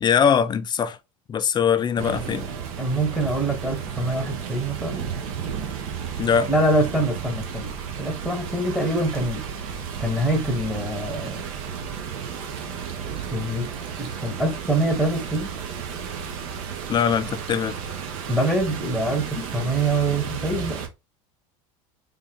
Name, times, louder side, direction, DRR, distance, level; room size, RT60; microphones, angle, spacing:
voice 1, 0.0-1.0 1.3-2.5 6.2-6.5 16.9-17.7 19.4-19.5, left 7 dB, 25° left, 0.5 m, -21 dB
sound 1, 2.0-20.9, right 7 dB, 70° right, 0.9 m, -33 dB
voice 2, 2.8-5.0 6.5-9.5 10.0-11.5 13.0-13.7 14.0-15.5 18.3-20.8, right 1 dB, 5° right, 1.0 m, -25 dB
3.6 x 2.4 x 3.4 m
hypercardioid pair, 95°, 18 cm